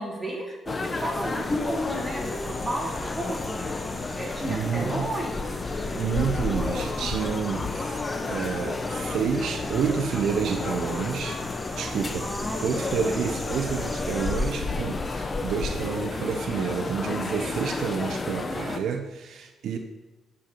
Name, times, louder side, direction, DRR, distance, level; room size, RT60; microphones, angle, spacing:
voice 1, 0.0-3.7 4.1-5.4 12.2-12.8, right 1 dB, 10° right, -3 dB, 3.2 m, -33 dB
sound 1, 0.7-18.8, left 3 dB, 30° left, 0.9 m, -31 dB
sound 2, 0.9-14.5, left 1 dB, 5° left, 0.8 m, -41 dB
voice 2, 4.4-5.1 5.9-8.0 8.3-11.4 11.8-12.3 12.6-19.8, right 7 dB, 70° right, 4 dB, 0.9 m, -29 dB
10.0 x 5.6 x 6.7 m, 1.2 s
cardioid pair, 90°, 0 cm